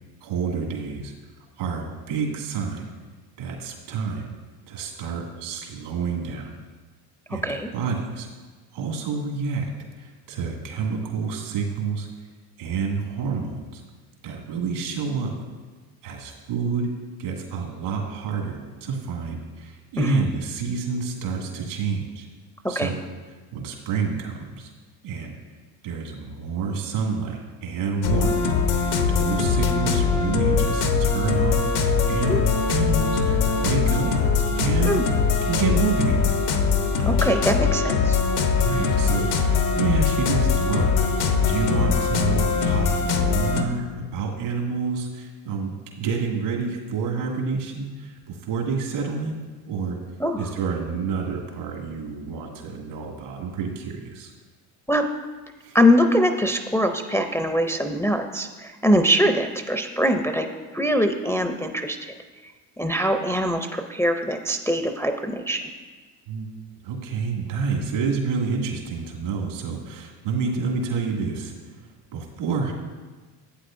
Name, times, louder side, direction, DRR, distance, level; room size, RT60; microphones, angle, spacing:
voice 1, 0.2-1.1 1.6-2.8 3.4-4.3 4.7-6.5 7.3-8.3 8.7-9.7 10.0-12.1 12.6-13.8 14.2-15.3 16.0-16.9 17.2-22.3 22.7-23.0 23.5-24.7 25.0-25.3 25.8-28.4 29.1-34.1 34.5-35.0 35.4-36.4 38.5-49.4 49.7-50.0 50.3-54.3 55.6-55.8 66.3-66.5 66.8-72.7, right 5 dB, 80° right, -1 dB, 2.2 m, -28 dB
voice 2, 7.3-7.7 20.0-20.2 22.8-22.9 32.3-32.4 34.9-35.1 37.1-38.2 50.2-50.4 54.9-55.1 55.7-60.5 60.7-62.1 62.8-65.6, equal, 5° left, 5 dB, 0.4 m, -22 dB
sound 1, 28.0-43.6, left 5 dB, 80° left, 0.9 m, -22 dB
11.5 x 8.4 x 2.5 m, 1.3 s
supercardioid pair, 75°, 49 cm